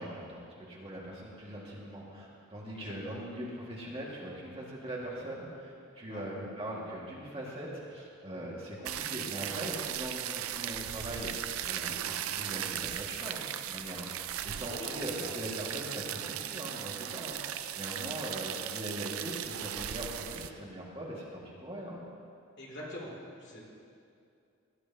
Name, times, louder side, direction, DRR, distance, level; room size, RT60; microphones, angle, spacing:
voice 1, 0.0-22.0, right 1 dB, 25° right, -5 dB, 2.0 m, -41 dB
voice 2, 2.8-3.2 6.0-6.2 8.3-8.4 13.2-13.3 14.7-15.3 22.6-23.1 23.4-23.6, left 1 dB, 60° left, -5 dB, 2.9 m, -44 dB
sound 1, 8.8-20.5, right 11 dB, 90° right, 0.4 m, -37 dB
17.0 x 10.0 x 2.9 m, 2.5 s
head